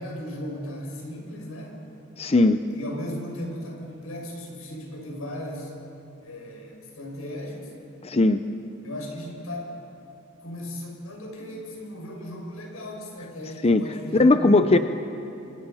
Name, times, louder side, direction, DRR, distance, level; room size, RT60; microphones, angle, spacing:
voice 1, 0.0-1.8 2.7-5.7 6.2-7.8 8.8-9.7 10.4-14.8, left 1 dB, 90° left, 0 dB, 6.6 m, -36 dB
voice 2, 2.2-2.6 8.0-8.4 13.6-13.8 14.2-14.8, left 2 dB, 30° left, 9 dB, 0.6 m, -18 dB
27.0 x 26.5 x 5.6 m, 2.7 s
head